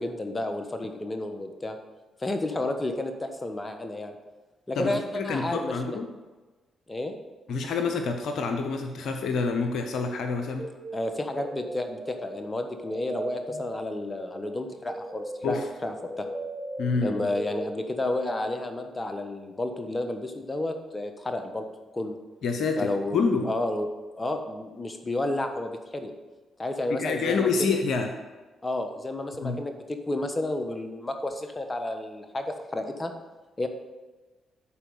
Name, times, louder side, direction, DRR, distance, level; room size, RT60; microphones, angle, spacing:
voice 1, 0.0-1.8 2.2-4.2 4.7-6.0 6.9-7.2 10.9-16.3 17.0-21.6 21.9-22.2 22.8-23.9 24.1-26.1 26.6-27.5 28.6-33.1 33.6-33.7, left 2 dB, 25° left, 6 dB, 1.2 m, -31 dB
voice 2, 4.8-6.1 7.5-10.7 15.4-15.6 16.8-17.3 22.4-23.5 27.0-28.1 29.4-29.6, left 4 dB, 70° left, 5 dB, 0.8 m, -27 dB
sound 1, 9.9-18.2, right 1 dB, 5° right, 3.0 m, -39 dB
11.5 x 4.5 x 5.5 m, 1.2 s
hypercardioid pair, 45°, 0 cm